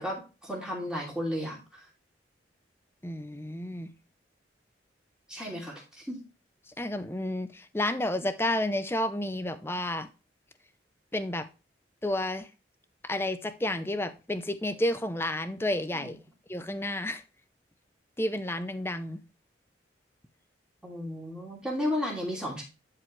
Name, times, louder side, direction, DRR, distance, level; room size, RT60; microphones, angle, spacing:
voice 1, 0.0-1.8 5.3-6.2 16.0-16.1 20.8-22.6, left 1 dB, 5° right, 2.9 m, -34 dB
voice 2, 3.0-3.9 6.8-10.1 11.1-11.5 12.0-12.5 13.0-16.2 16.5-17.2 18.2-19.2, left 1 dB, 10° left, 0.6 m, -31 dB
11.0 x 4.8 x 3.2 m
head